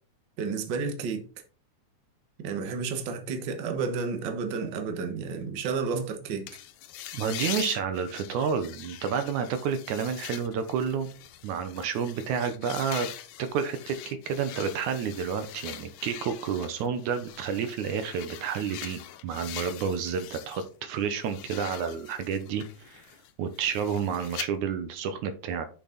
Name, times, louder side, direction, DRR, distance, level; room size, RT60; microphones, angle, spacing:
voice 1, 0.4-1.2 2.4-6.5, right 5 dB, 55° right, 1.3 m, -31 dB
sound 1, 6.5-20.7 21.0-24.5, left 12 dB, 75° left, 2.0 m, -42 dB
voice 2, 7.1-11.1 11.4-13.1 13.4-23.1 23.4-25.7, right 7 dB, 75° right, 2.2 m, -30 dB
6.5 x 6.2 x 3.9 m
omnidirectional pair, 3.6 m